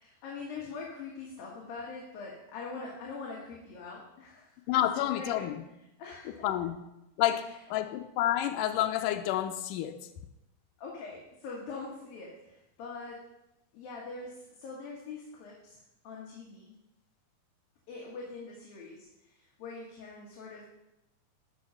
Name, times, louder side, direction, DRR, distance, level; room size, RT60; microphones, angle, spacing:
voice 1, 0.0-4.5 5.0-5.5 6.0-6.5 7.4-7.5 10.8-13.2 13.7-15.8 16.0-16.7 17.9-20.6, left 4 dB, 70° left, -3 dB, 3.4 m, -43 dB
voice 2, 4.7-5.6 6.4-6.8 7.2-10.0, left 12 dB, 90° left, 5 dB, 1.9 m, -29 dB
14.0 x 6.3 x 5.5 m, 0.90 s
omnidirectional pair, 4.4 m